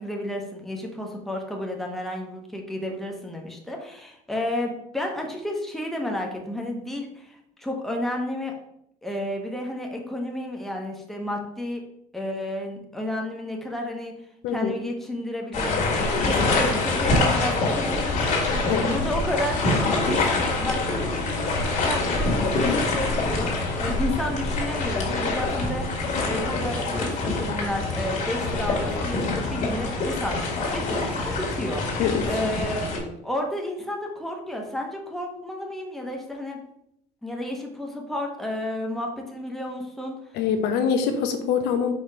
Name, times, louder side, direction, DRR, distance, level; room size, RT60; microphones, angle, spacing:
voice 1, 0.0-8.5 9.0-11.8 12.1-14.1 14.5-32.9 33.2-36.6 37.2-40.1, left 1 dB, ahead, 1 dB, 1.1 m, -32 dB
sound 1, 15.5-33.0, left 3 dB, 45° left, 1.9 m, -25 dB
voice 2, 40.3-41.9, left 7 dB, 70° left, 6 dB, 0.9 m, -24 dB
4.9 x 4.2 x 4.6 m, 0.78 s
cardioid pair, 125°, 17 cm